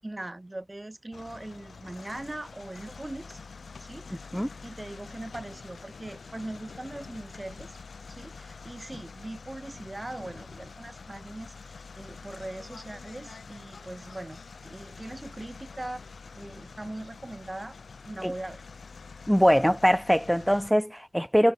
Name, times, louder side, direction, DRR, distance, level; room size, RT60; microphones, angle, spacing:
voice 1, 0.0-3.4 3.8-4.2 4.6-7.8 8.1-16.0 16.3-17.8 18.0-18.6, right 1 dB, 25° right, 7.6 m, -40 dB
sound 1, 1.1-20.7, left 4 dB, 80° left, 2.4 m, -46 dB
voice 2, 19.3-21.5, equal, ahead, 0.7 m, -22 dB
wide cardioid pair, 90°, 0 cm